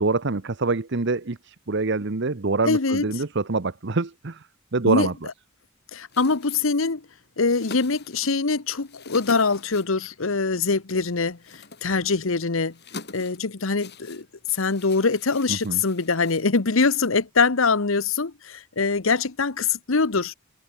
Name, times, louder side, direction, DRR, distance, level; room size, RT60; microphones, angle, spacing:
voice 1, 0.0-4.5 4.7-5.1 15.5-15.8, right 3 dB, 55° right, 1.0 m, -25 dB
voice 2, 2.6-3.0 4.8-5.1 5.9-7.0 7.4-12.7 13.1-14.2 14.5-20.3, left 4 dB, 70° left, 1.1 m, -23 dB
sound 1, 6.1-17.0, left 3 dB, 50° left, 7.9 m, -46 dB
head